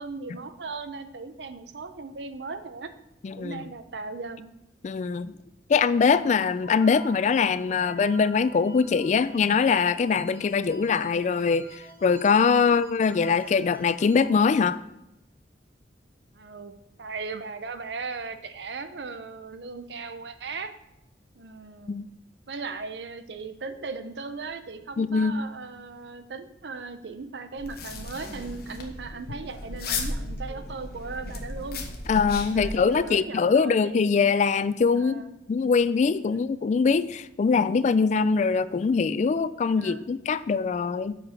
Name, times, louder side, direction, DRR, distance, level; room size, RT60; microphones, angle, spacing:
voice 1, 0.0-2.9 3.4-4.5 12.7-12.8 16.3-20.7 21.3-22.1 22.5-31.8 32.5-34.1 35.0-35.4 39.8-40.1, right 4 dB, 80° right, 10 dB, 0.7 m, -38 dB
voice 2, 3.2-3.6 4.8-5.3 5.7-14.8 21.9-22.0 25.0-25.3 32.1-35.2 35.5-41.2, left 5 dB, 40° left, 15 dB, 0.3 m, -23 dB
sound 1, 6.6-14.3, right 2 dB, 15° right, 1.7 m, -48 dB
sound 2, 27.6-33.0, left 3 dB, 60° left, 1.1 m, -35 dB
7.5 x 4.9 x 5.8 m, 0.86 s
head